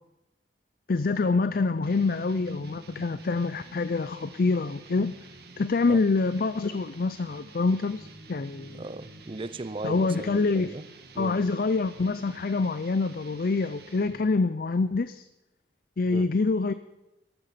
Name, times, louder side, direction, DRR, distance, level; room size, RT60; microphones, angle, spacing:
voice 1, 0.9-5.2 5.6-8.8 9.8-10.7 11.2-15.3 16.0-16.7, left 3 dB, 50° left, 13 dB, 0.5 m, -26 dB
sound 1, 1.8-14.4, right 2 dB, 60° right, 1.7 m, -49 dB
voice 2, 8.7-10.8 11.1-11.3 16.1-16.3, right 2 dB, 30° right, 15 dB, 0.6 m, -37 dB
13.5 x 12.5 x 5.8 m, 0.95 s
head